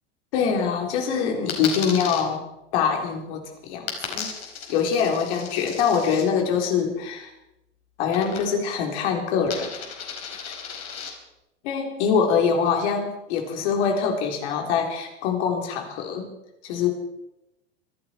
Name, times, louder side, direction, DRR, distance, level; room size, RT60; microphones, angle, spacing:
voice 1, 0.3-2.4 2.7-4.3 4.7-7.3 8.0-9.7 10.5-10.6 11.6-16.3 16.6-16.9, left 6 dB, 65° left, 2 dB, 4.4 m, -24 dB
Coin (dropping), 1.5-2.2 3.9-6.3 8.1-8.8 9.0-11.1, left 7 dB, 45° left, 4.8 m, -35 dB
25.0 x 12.0 x 4.7 m, 0.91 s
hypercardioid pair, 95°, 36 cm